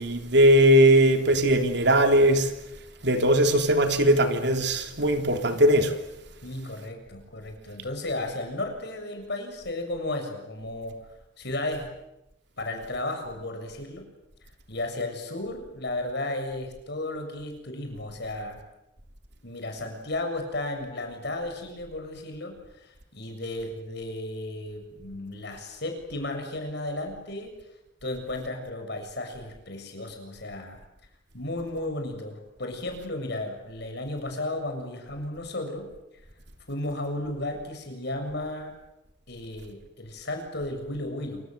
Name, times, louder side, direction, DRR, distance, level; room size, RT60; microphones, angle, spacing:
voice 1, 0.0-2.5 3.0-5.9, right 1 dB, 65° right, 6 dB, 3.3 m, -19 dB
voice 2, 6.4-11.0 11.4-11.9 12.6-14.0 14.7-18.6 19.4-22.6 22.8-27.5 28.0-30.8 31.3-35.9 36.7-38.7 39.3-41.4, left 2 dB, 65° left, 4 dB, 7.2 m, -34 dB
28.0 x 25.5 x 8.1 m, 0.89 s
head